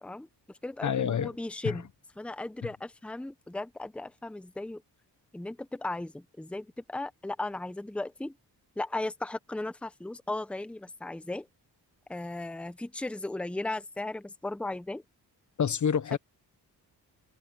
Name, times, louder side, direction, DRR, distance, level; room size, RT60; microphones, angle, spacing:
voice 1, 0.0-1.9 2.2-4.8 5.3-8.3 8.8-11.5 12.1-15.0, left 2 dB, 5° left, 0.8 m, -36 dB
voice 2, 0.8-1.3 1.6-1.7 15.6-16.2, left 7 dB, 45° left, 0.9 m, -27 dB
wide cardioid pair, 140°, 41 cm